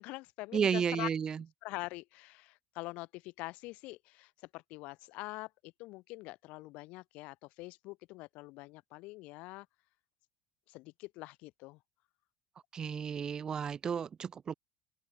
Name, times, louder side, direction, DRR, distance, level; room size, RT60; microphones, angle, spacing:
voice 1, 0.0-1.1 1.6-9.7 10.7-11.8, left 22 dB, 70° left, 1.4 m, -44 dB
voice 2, 0.5-1.4 12.7-14.5, right 7 dB, 30° right, 0.5 m, -32 dB
open air
supercardioid pair, 105°, 2 cm